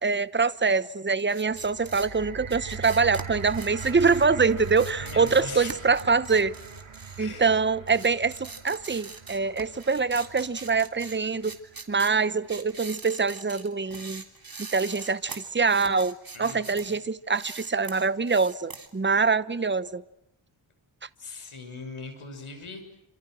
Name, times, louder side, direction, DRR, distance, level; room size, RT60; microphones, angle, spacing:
voice 1, 0.0-6.5 7.2-11.5 11.9-14.2 14.6-20.0, right 4 dB, 20° right, 16 dB, 1.0 m, -24 dB
sound 1, 1.2-7.5 7.9-17.0 17.3-18.9, right 4 dB, 45° right, 3.5 m, -43 dB
sound 2, 1.5-11.7 12.5-12.6, right 5 dB, 75° right, 5.2 m, -41 dB
voice 2, 5.0-5.7 7.2-7.5 16.3-17.0 21.2-22.8, left 3 dB, 80° left, 7 dB, 6.6 m, -40 dB
28.5 x 26.5 x 6.4 m, 0.86 s
wide cardioid pair, 85°, 49 cm